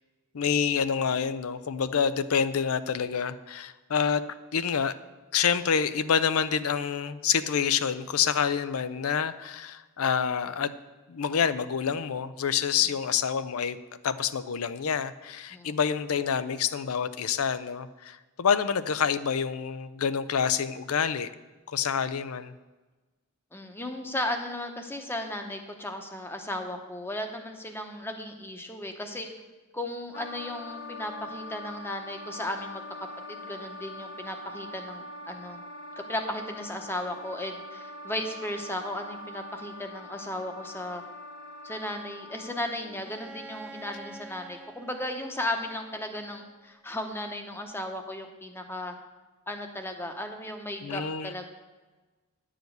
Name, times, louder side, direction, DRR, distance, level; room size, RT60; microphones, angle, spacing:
voice 1, 0.3-4.2 4.5-4.9 5.3-10.7 11.1-13.8 14.0-21.3 21.7-22.5 50.8-51.3, left 7 dB, 85° left, 13 dB, 0.5 m, -27 dB
voice 2, 23.5-29.3 29.7-32.8 33.3-35.6 36.0-41.0 41.6-48.9 49.5-51.5, left 1 dB, 10° left, 5 dB, 0.9 m, -35 dB
Wind instrument woodwind instrument, 30.1-43.0, left 1 dB, 55° left, 1.5 m, -43 dB
Bowed string instrument, 43.0-46.8, right 3 dB, 5° right, 0.5 m, -48 dB
10.5 x 5.0 x 7.9 m, 1.2 s
head